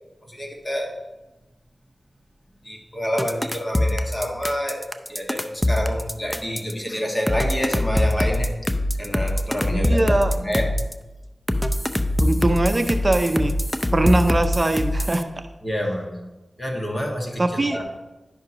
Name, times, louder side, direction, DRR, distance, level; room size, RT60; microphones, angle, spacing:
voice 1, 0.2-1.0 2.6-8.5 9.0-10.6 13.8-14.3 15.6-16.1 16.6-17.8, equal, 30° left, 1 dB, 1.7 m, -28 dB
sound 1, 3.2-6.7 7.3-10.9 11.5-15.2, left 1 dB, 15° left, 0.6 m, -23 dB
voice 2, 9.7-10.3 12.2-13.5 13.9-15.2 17.4-17.8, right 2 dB, 35° right, 7 dB, 0.5 m, -21 dB
10.5 x 5.8 x 2.9 m, 1.1 s
cardioid pair, 40°, 0 cm